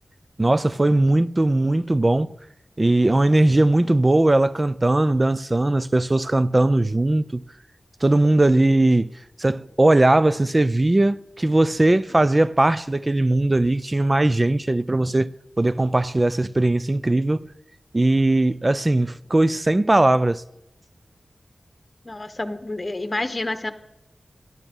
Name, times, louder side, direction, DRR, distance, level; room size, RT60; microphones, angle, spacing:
voice 1, 0.4-2.3 2.8-7.4 8.0-9.1 9.4-15.3 15.6-17.4 17.9-20.4, right 2 dB, 35° right, 0.5 m, -19 dB
voice 2, 22.0-23.7, left 2 dB, 40° left, 1.3 m, -28 dB
12.5 x 12.0 x 5.4 m
cardioid pair, 40°, 0 cm